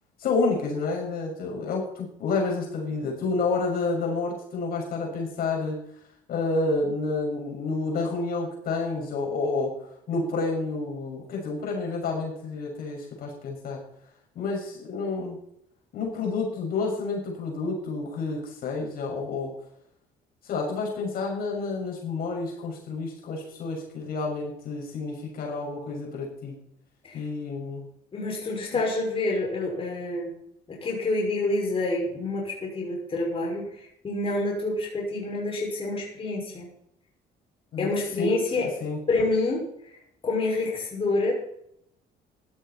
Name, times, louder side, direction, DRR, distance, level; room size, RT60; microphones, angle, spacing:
voice 1, 0.2-5.8 6.3-9.7 10.1-13.8 14.3-15.4 15.9-19.5 20.4-26.5 27.1-27.9 28.7-28.8 37.7-37.9 38.2-38.3 38.8-39.0, left 3 dB, 60° left, -1 dB, 6.4 m, -29 dB
voice 2, 28.1-30.3 30.7-33.7 34.0-36.7 37.8-38.7 39.1-39.6 40.2-41.3, left 2 dB, 35° left, -2 dB, 6.0 m, -27 dB
16.0 x 12.5 x 4.4 m, 0.74 s
cardioid pair, 110°, 17 cm